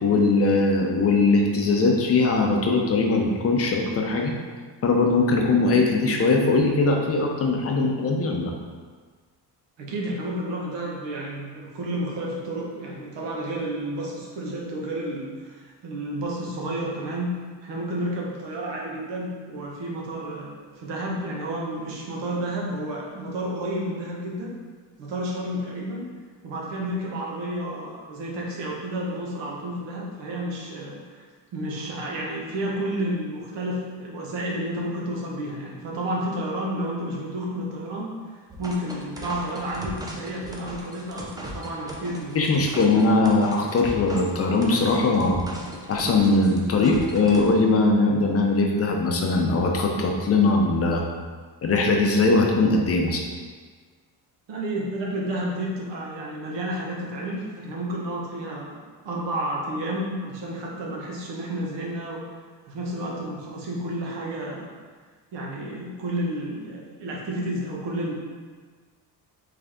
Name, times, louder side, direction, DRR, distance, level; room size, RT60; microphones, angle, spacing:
voice 1, 0.0-4.3 4.8-8.5 42.3-45.4 45.9-51.0 51.6-53.2, left 3 dB, 35° left, 1 dB, 0.6 m, -21 dB
voice 2, 9.8-17.3 17.6-24.6 25.0-26.1 26.4-31.3 31.5-38.1 38.6-42.5 54.5-62.2 62.7-64.7 65.3-68.1, right 1 dB, 75° right, -3 dB, 1.1 m, -31 dB
sound 1, 38.5-47.5, right 1 dB, 10° right, 0.4 m, -38 dB
3.8 x 3.4 x 3.5 m, 1.5 s
cardioid pair, 140°, 44 cm